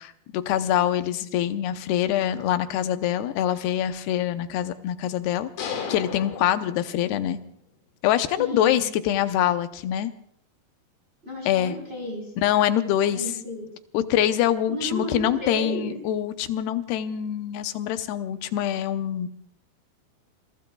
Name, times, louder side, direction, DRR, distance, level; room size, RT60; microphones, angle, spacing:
voice 1, 0.0-5.5 5.9-7.4 8.0-10.1 11.5-11.7 12.4-13.2 13.9-19.3, left 11 dB, 80° left, 9 dB, 2.8 m, -24 dB
sound 1, 5.6-7.4, left 6 dB, 65° left, 3.7 m, -35 dB
voice 2, 8.4-8.8 11.2-12.3 13.1-13.7 14.7-16.0, equal, 15° right, 0 dB, 4.2 m, -33 dB
27.0 x 22.0 x 2.3 m, 0.67 s
omnidirectional pair, 4.7 m